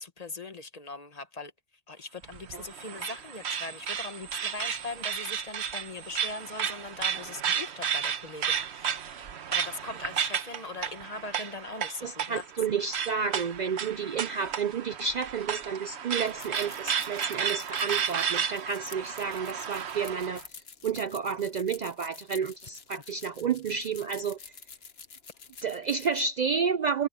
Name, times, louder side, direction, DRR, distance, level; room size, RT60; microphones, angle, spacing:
voice 1, 0.0-1.5 1.9-12.4, left 3 dB, 40° left, 1.2 m, -40 dB
sound 1, 2.2-20.4, right 8 dB, 85° right, 1.2 m, -33 dB
voice 2, 12.0-20.4 20.8-24.4 25.6-27.1, right 6 dB, 55° right, 0.5 m, -31 dB
sound 2, 16.1-26.2, left 6 dB, 70° left, 1.4 m, -49 dB
omnidirectional pair, 1.1 m